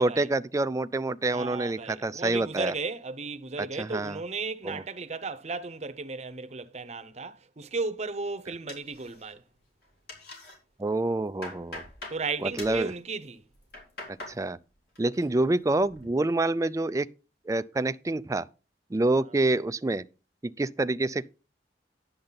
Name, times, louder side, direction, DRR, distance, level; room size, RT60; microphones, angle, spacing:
voice 1, 0.0-2.7 3.6-4.2 4.6-4.8 10.8-11.8 12.4-12.9 14.1-14.6 15.0-17.1 17.5-18.5 18.9-20.0 20.4-21.3, right 2 dB, 20° right, 0.4 m, -27 dB
voice 2, 1.3-9.4 12.1-13.4, right 3 dB, 40° right, 0.8 m, -35 dB
sound 1, 8.7-9.5 9.8-10.6 11.0-12.2 12.6-12.9 13.5-14.4 14.7-15.3 15.6-16.1, left 2 dB, 60° left, 3.8 m, -43 dB
10.5 x 7.7 x 4.0 m
head